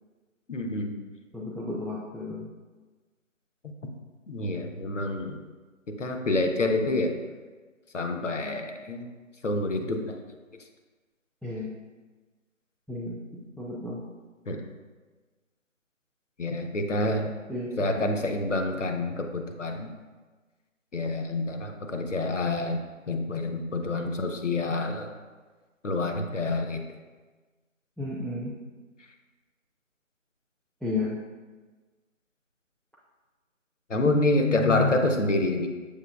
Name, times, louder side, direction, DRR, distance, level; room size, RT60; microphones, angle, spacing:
voice 1, 0.5-0.9 4.3-5.4 5.9-7.1 7.9-9.1 9.4-10.2 14.5-14.6 16.4-17.3 17.8-19.9 20.9-22.8 23.1-25.1 25.8-26.8 33.9-35.7, left 2 dB, 65° left, 4 dB, 0.6 m, -27 dB
voice 2, 1.3-2.5 11.4-11.7 12.9-14.0 17.5-17.9 28.0-28.6 30.8-31.2 34.0-34.9, left 4 dB, 5° left, -7 dB, 0.3 m, -32 dB
6.6 x 2.9 x 2.2 m, 1.3 s
figure-of-eight pair, 175°, 40 cm